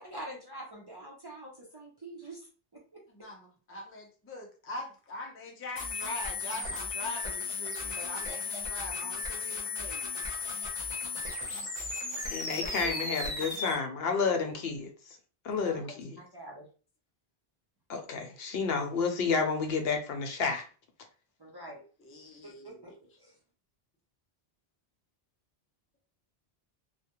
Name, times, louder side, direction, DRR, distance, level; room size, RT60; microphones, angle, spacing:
voice 1, 0.0-2.8 13.6-13.7 15.6-15.8 16.2-16.7 21.4-21.8 22.4-23.3, right 1 dB, 30° right, 0.5 m, -45 dB
voice 2, 3.1-10.0 22.0-22.9, left 2 dB, 20° left, 0.4 m, -42 dB
sound 1, 5.8-13.8, left 4 dB, 35° left, 0.7 m, -35 dB
voice 3, 12.3-14.9 15.4-16.2 17.9-20.6, left 5 dB, 75° left, 0.8 m, -30 dB
2.3 x 2.1 x 2.9 m
omnidirectional pair, 1.0 m